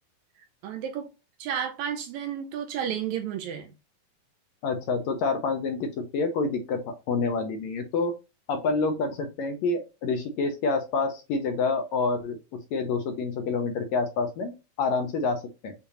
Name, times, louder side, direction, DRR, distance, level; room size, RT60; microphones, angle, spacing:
voice 1, 0.6-1.1 1.4-3.7, right 9 dB, 80° right, 1.7 m, -32 dB
voice 2, 4.6-8.1 8.5-12.4 12.7-14.5 14.8-15.7, left 4 dB, 75° left, 1.7 m, -27 dB
6.9 x 2.4 x 2.8 m
omnidirectional pair, 3.8 m